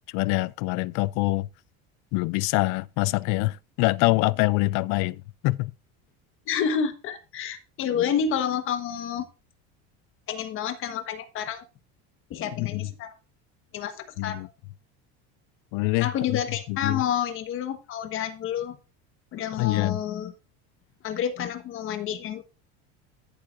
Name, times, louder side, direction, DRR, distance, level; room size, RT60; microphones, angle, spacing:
voice 1, 0.1-1.5 2.1-5.7 12.6-12.9 14.2-14.5 15.7-16.4 16.7-17.0 19.6-20.0, left 21 dB, 60° left, 0.5 m, -25 dB
voice 2, 6.5-9.3 10.3-11.6 12.3-13.1 13.7-14.5 16.0-18.8 19.3-20.3 21.0-22.4, left 8 dB, 40° left, 1.4 m, -29 dB
13.0 x 7.7 x 2.6 m
cardioid pair, 160°, 32 cm